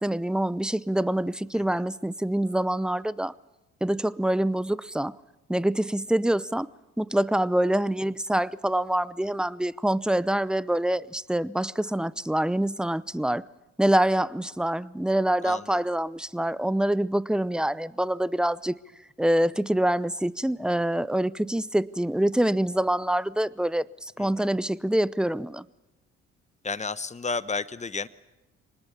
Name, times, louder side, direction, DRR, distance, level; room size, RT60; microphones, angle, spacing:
voice 1, 0.0-3.3 3.8-5.1 5.5-6.7 7.0-13.4 13.8-18.7 19.2-25.6, right 1 dB, 5° right, 0.7 m, -25 dB
voice 2, 15.4-15.9 24.2-24.5 26.6-28.1, left 4 dB, 20° left, 1.1 m, -33 dB
25.5 x 20.0 x 7.1 m
hypercardioid pair, 55°, 31 cm